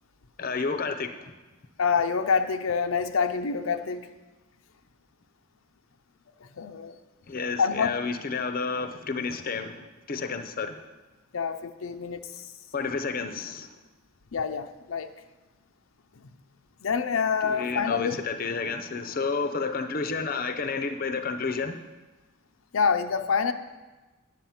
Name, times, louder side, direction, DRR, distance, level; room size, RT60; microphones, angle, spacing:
voice 1, 0.4-1.3 7.3-10.8 12.7-13.7 17.4-21.8, left 4 dB, 45° left, 8 dB, 0.6 m, -31 dB
voice 2, 1.8-4.1 6.6-7.0 7.6-8.0 11.3-12.3 14.3-15.1 16.8-18.2 22.7-23.5, left 5 dB, 90° left, 8 dB, 0.6 m, -26 dB
9.2 x 7.7 x 5.6 m, 1.2 s
head